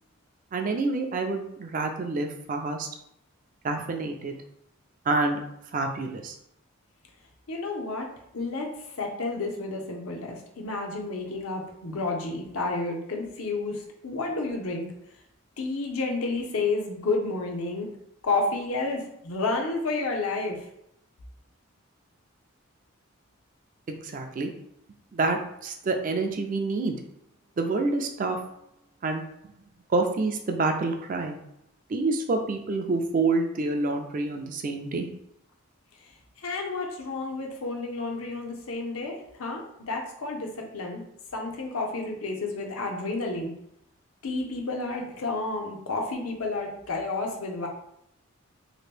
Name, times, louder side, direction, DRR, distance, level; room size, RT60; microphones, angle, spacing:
voice 1, 0.5-2.9 3.6-4.3 5.1-5.4 5.7-6.4 23.9-24.5 25.1-27.0 27.6-28.4 29.0-29.2 29.9-31.4 31.9-35.1, right 3 dB, 40° right, 4 dB, 0.3 m, -27 dB
voice 2, 7.5-8.1 8.3-8.7 9.0-14.9 15.6-17.9 18.2-20.6 36.4-41.0 41.3-43.5 44.2-47.7, left 3 dB, 75° left, 1 dB, 0.7 m, -30 dB
2.9 x 2.5 x 3.2 m, 0.75 s
head